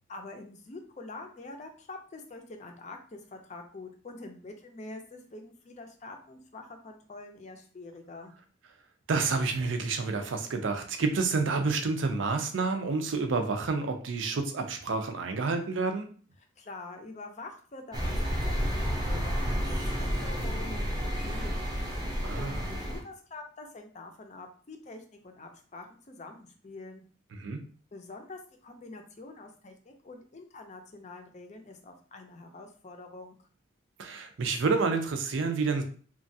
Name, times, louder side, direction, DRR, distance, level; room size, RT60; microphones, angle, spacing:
voice 1, 0.1-8.3 16.6-18.2 18.4-21.7 22.0-27.0 27.9-33.4, left 2 dB, 35° left, 4 dB, 0.5 m, -46 dB
voice 2, 9.1-16.1 22.2-22.6 27.3-27.6 34.0-35.8, right 4 dB, 80° right, 6 dB, 0.5 m, -29 dB
sound 1, 17.9-23.0, equal, 20° right, 0.5 m, -31 dB
3.0 x 2.3 x 2.7 m, 0.43 s
head